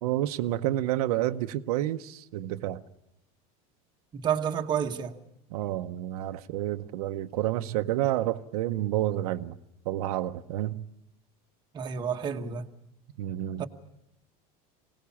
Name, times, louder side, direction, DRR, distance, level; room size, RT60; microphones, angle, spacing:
voice 1, 0.0-2.8 5.5-9.6 9.8-10.8 13.2-13.6, right 14 dB, 90° right, 0.9 m, -29 dB
voice 2, 4.1-5.2 11.7-12.7 13.6-13.7, right 8 dB, 25° right, 1.2 m, -30 dB
24.0 x 18.5 x 7.1 m
cardioid pair, 165°, 19 cm